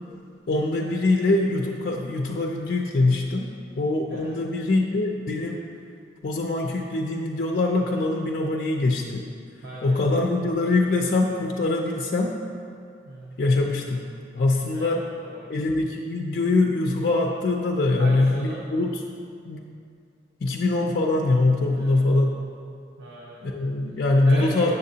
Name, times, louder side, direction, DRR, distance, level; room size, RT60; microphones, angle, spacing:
voice 1, 0.5-3.5 3.7-5.6 6.2-9.3 9.8-12.4 13.4-14.1 14.3-15.0 15.5-19.0 19.4-19.6 20.4-22.3 23.4-24.7, left 2 dB, 55° left, 1 dB, 0.4 m, -23 dB
voice 2, 4.1-4.4 9.6-10.1 13.0-13.4 14.7-15.5 18.0-18.6 21.7-22.0 23.0-23.4 24.3-24.7, right 1 dB, 80° right, -6 dB, 0.9 m, -37 dB
7.5 x 6.7 x 2.7 m, 2.4 s
head